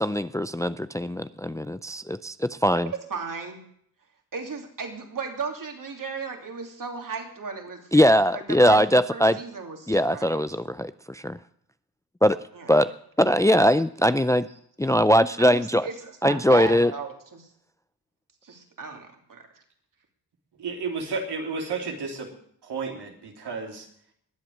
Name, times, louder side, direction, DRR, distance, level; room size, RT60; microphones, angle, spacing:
voice 1, 0.0-2.9 7.9-9.4 9.9-11.4 12.2-12.4 12.7-12.9 13.2-14.5 14.8-15.9 16.2-16.9, equal, 10° left, 13 dB, 0.5 m, -21 dB
voice 2, 2.8-3.6 4.3-7.9 8.3-8.8 9.1-10.4 12.5-12.9 15.4-17.5 18.4-19.6, right 5 dB, 55° right, 3 dB, 3.1 m, -36 dB
voice 3, 20.6-22.3 22.6-23.9, right 4 dB, 80° right, 1 dB, 3.2 m, -32 dB
21.0 x 7.8 x 6.5 m, 0.66 s
cardioid pair, 65°, 39 cm